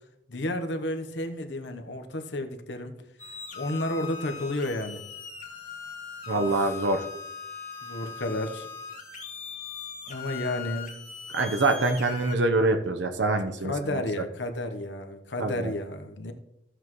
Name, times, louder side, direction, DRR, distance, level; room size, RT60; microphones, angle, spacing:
voice 1, 0.3-3.0 3.5-5.0 6.3-6.7 7.8-8.7 10.1-11.0 13.6-16.3, left 1 dB, 70° left, 6 dB, 1.0 m, -32 dB
sound 1, 3.2-12.4, left 6 dB, 45° left, 2.2 m, -40 dB
voice 2, 6.3-7.0 11.3-14.0 15.4-15.7, right 2 dB, 75° right, 6 dB, 0.9 m, -25 dB
14.5 x 8.1 x 3.1 m, 0.82 s
head